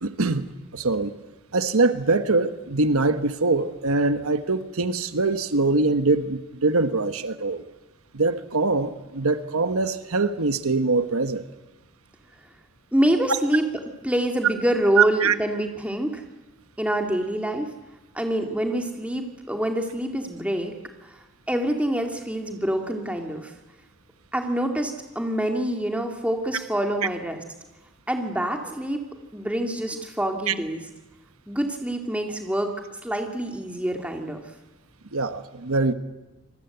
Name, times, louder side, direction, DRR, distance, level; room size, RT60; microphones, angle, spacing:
voice 1, 0.0-1.1 1.5-7.6 8.1-11.5 15.0-15.3 30.5-30.6 35.1-35.9, right 3 dB, 80° right, 11 dB, 1.2 m, -23 dB
voice 2, 12.9-13.7 14.0-16.2 16.8-17.7 18.1-20.7 21.0-21.1 21.5-23.5 24.3-27.4 28.1-29.0 29.3-30.8 31.5-32.7 33.0-34.4, right 1 dB, 5° right, 3 dB, 2.4 m, -26 dB
26.5 x 20.5 x 8.0 m, 1.1 s
head